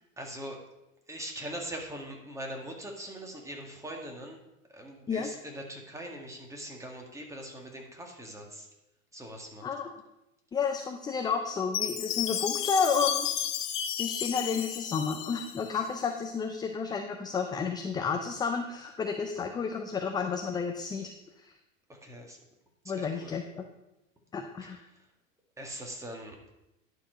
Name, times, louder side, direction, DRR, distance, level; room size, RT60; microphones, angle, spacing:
voice 1, 0.2-0.6 1.1-4.4 4.7-8.7 9.1-9.7 21.9-22.4 22.8-23.3 24.6-25.1 25.6-26.4, right 1 dB, 10° right, 1 dB, 1.8 m, -42 dB
voice 2, 10.5-13.3 14.0-21.1 21.4-21.5 22.9-23.6 24.3-24.8, left 5 dB, 10° left, 5 dB, 0.4 m, -31 dB
Chime, 11.7-15.9, left 10 dB, 65° left, 1.0 m, -33 dB
11.0 x 4.7 x 6.2 m, 0.92 s
hypercardioid pair, 105°, 39 cm